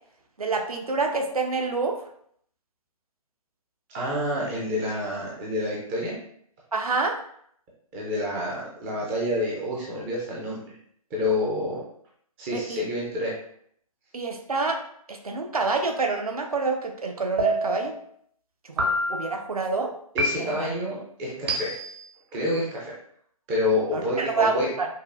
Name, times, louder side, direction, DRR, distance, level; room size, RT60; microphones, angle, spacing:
voice 1, 0.4-2.0 6.7-7.2 12.5-12.8 14.1-14.8 15.1-17.9 18.7-19.9 20.4-20.7 23.9-24.9, right 3 dB, 75° right, 2 dB, 0.8 m, -27 dB
voice 2, 3.9-6.2 7.9-10.6 11.1-11.8 12.4-13.3 20.1-21.7 22.3-23.0 23.5-24.7, left 1 dB, 10° right, -4 dB, 0.4 m, -28 dB
sound 1, 17.4-18.0 18.8-19.4 20.2-20.8 21.5-22.1, right 1 dB, 40° right, 0.7 m, -27 dB
5.2 x 2.1 x 2.4 m, 0.66 s
figure-of-eight pair, 140°, 19 cm